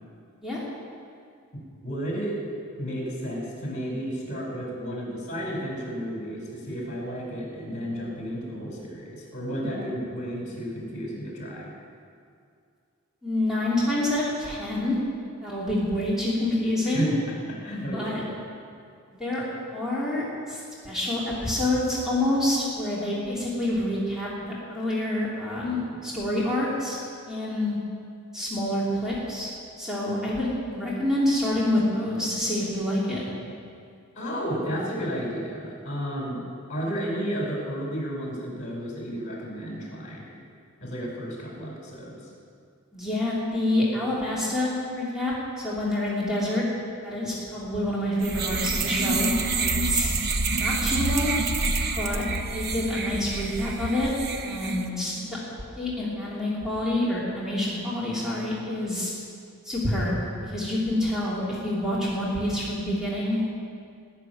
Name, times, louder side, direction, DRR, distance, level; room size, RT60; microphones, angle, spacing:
voice 1, 1.5-2.3 2.8-11.7 16.9-17.2 17.6-18.2 34.1-36.4 36.7-40.4 40.8-42.3, equal, 35° left, -3 dB, 5.0 m, -32 dB
voice 2, 13.2-15.0 15.4-17.1 17.6-18.2 19.2-19.4 19.7-24.3 24.7-27.0 27.3-27.8 28.3-29.5 29.8-33.2 42.9-46.6 47.0-49.3 49.6-50.1 50.5-51.4 52.0-52.2 52.5-54.1 54.4-55.3 55.8-59.1 59.6-63.5, left 1 dB, ahead, -8 dB, 3.0 m, -27 dB
sound 1, 48.2-54.9, right 3 dB, 50° right, 0.9 m, -27 dB
19.5 x 7.0 x 9.4 m, 2.4 s
head